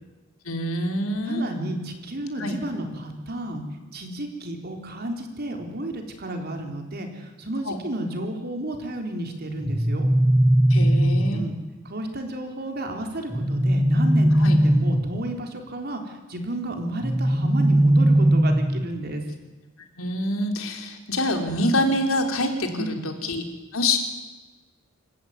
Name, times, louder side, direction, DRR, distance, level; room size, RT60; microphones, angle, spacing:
voice 1, 0.4-1.5 2.4-2.6 7.6-7.8 10.7-11.4 14.3-14.6 20.0-23.4 23.7-24.0, left 1 dB, 80° left, 4 dB, 3.4 m, -26 dB
voice 2, 1.3-3.6 3.9-10.1 10.9-11.0 11.3-11.5 11.8-19.2 22.7-23.1, right 1 dB, 50° right, 3 dB, 3.8 m, -32 dB
sound 1, 9.6-11.6 13.3-15.3 17.0-19.0, right 1 dB, 10° right, 0.7 m, -19 dB
26.5 x 14.5 x 9.4 m, 1.2 s
head